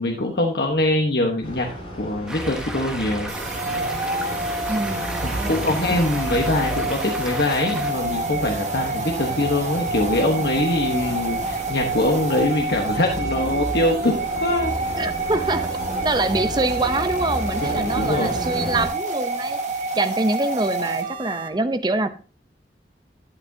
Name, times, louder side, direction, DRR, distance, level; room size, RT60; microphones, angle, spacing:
voice 1, 0.0-1.7 2.0-3.3 3.7-3.9 5.2-14.7 17.6-18.3, left 1 dB, 65° left, 1 dB, 1.1 m, -23 dB
sound 1, 1.4-18.9, equal, 30° left, 4.6 m, -33 dB
Stream, 2.3-7.9, right 1 dB, 5° right, 1.1 m, -34 dB
sound 2, 3.3-21.5, right 3 dB, 40° right, 1.4 m, -28 dB
voice 2, 4.7-5.7 15.0-15.7 16.0-22.1, right 2 dB, 25° right, 10 dB, 0.6 m, -25 dB
11.5 x 8.7 x 2.7 m, 0.37 s
head